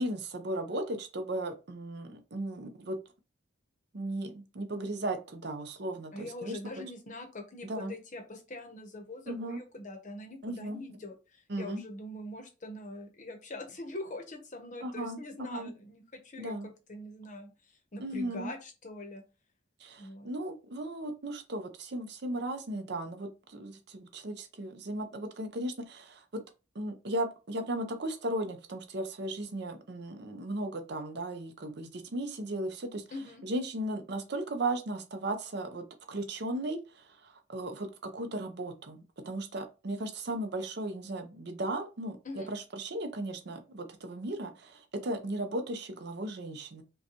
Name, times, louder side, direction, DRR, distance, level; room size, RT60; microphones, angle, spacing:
voice 1, 0.0-3.0 3.9-6.6 7.6-7.9 9.3-9.6 10.4-10.8 11.5-11.8 14.8-15.7 16.4-16.7 18.0-18.5 19.8-26.4 26.7-33.0 33.4-46.8, right 1 dB, 55° right, 7 dB, 0.6 m, -36 dB
voice 2, 6.1-19.2 20.0-20.3 33.1-33.4 42.2-42.5, left 1 dB, 40° left, 4 dB, 0.8 m, -43 dB
5.2 x 2.2 x 2.9 m, 0.30 s
head